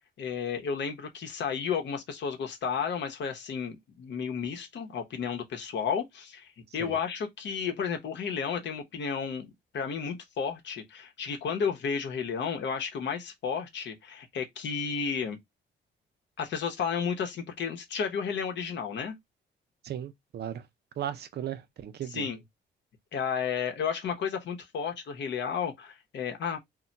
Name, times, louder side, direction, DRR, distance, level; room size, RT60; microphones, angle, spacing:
voice 1, 0.2-15.4 16.4-19.1 22.1-22.4 23.1-26.6, left 6 dB, 65° left, 0.9 m, -32 dB
voice 2, 19.8-20.7 21.0-22.3, right 10 dB, 55° right, 0.5 m, -36 dB
2.2 x 2.2 x 3.9 m
cardioid pair, 90°, 20 cm